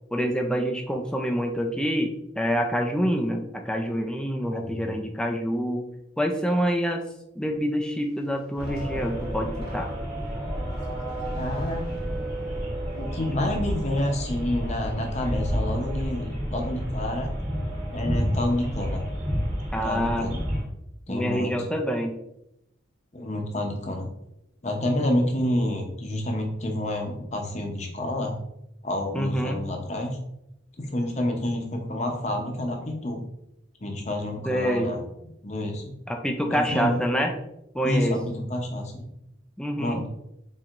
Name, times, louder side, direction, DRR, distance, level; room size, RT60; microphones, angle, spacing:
voice 1, 0.1-5.9 6.2-7.1 7.4-9.9 19.7-20.3 21.1-22.2 29.1-29.6 34.4-34.9 36.1-37.3 37.7-38.2 39.6-40.0, equal, 5° left, 3 dB, 0.3 m, -26 dB
voice 2, 4.5-5.0 11.4-11.9 12.9-17.3 17.9-19.0 19.8-20.5 21.1-21.5 23.1-24.1 24.6-28.3 28.8-30.2 30.8-33.2 33.8-35.0 35.4-35.9 36.5-37.0 37.8-39.1 39.8-40.1, left 1 dB, 35° left, 2 dB, 0.7 m, -28 dB
sound 1, 8.3-13.3 13.8-14.2, right 3 dB, 50° right, 1.2 m, -40 dB
sound 2, 8.6-20.6, equal, 30° right, 1.4 m, -30 dB
4.4 x 4.0 x 2.5 m, 0.83 s
head